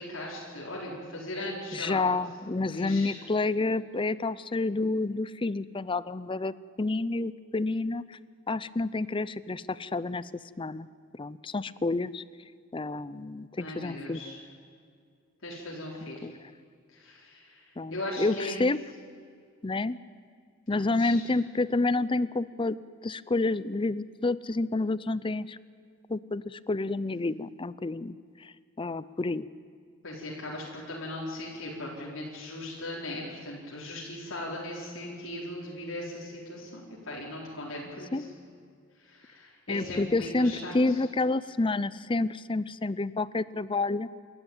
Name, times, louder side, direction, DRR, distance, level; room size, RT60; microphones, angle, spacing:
voice 1, 0.0-2.0 2.7-3.2 13.6-14.4 15.4-16.3 16.9-18.7 20.7-21.2 30.0-38.3 39.0-41.0, left 1 dB, 90° left, -4 dB, 4.2 m, -38 dB
voice 2, 1.7-8.2 8.5-10.3 10.6-10.9 11.2-12.2 12.7-14.2 16.0-16.3 17.8-18.8 19.6-20.0 20.7-22.8 23.0-25.6 26.1-29.4 38.1-38.2 39.7-44.1, left 2 dB, 25° left, 18 dB, 0.5 m, -29 dB
28.5 x 13.0 x 9.0 m, 2.2 s
head